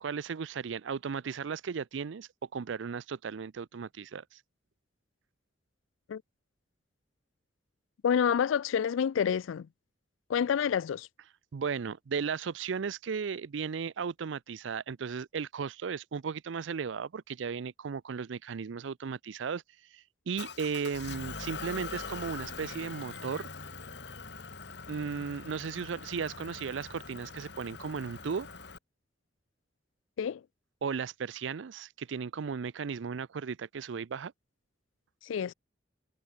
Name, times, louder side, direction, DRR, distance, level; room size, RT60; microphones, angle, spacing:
voice 1, 0.0-4.4 11.5-19.6 19.9-23.5 24.9-28.5 30.8-34.3, right 6 dB, 80° right, 0.5 m, -36 dB
voice 2, 8.0-9.7 10.3-11.1 30.2-30.4 35.2-35.5, left 7 dB, 85° left, 0.3 m, -28 dB
Motor vehicle (road) / Engine, 20.4-28.8, left 4 dB, 60° left, 1.5 m, -43 dB
head